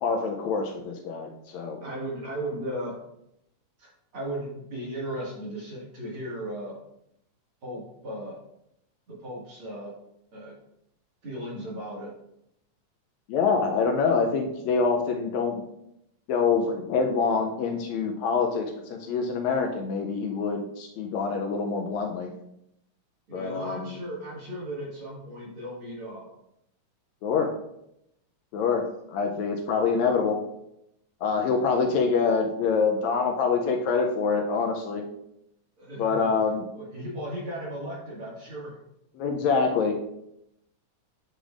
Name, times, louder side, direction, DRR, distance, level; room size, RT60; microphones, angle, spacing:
voice 1, 0.0-1.8 13.3-15.6 16.3-22.3 23.3-24.0 27.2-27.5 28.5-30.4 31.2-35.0 36.0-36.6 39.2-39.9, left 5 dB, 80° left, 3 dB, 1.6 m, -25 dB
voice 2, 1.8-3.0 3.8-6.8 7.6-8.4 9.1-9.9 10.3-10.5 11.2-12.1 23.3-26.3 35.8-36.4 36.7-38.8, right 1 dB, 45° right, -5 dB, 2.5 m, -36 dB
8.9 x 5.0 x 2.5 m, 0.79 s
omnidirectional pair, 3.7 m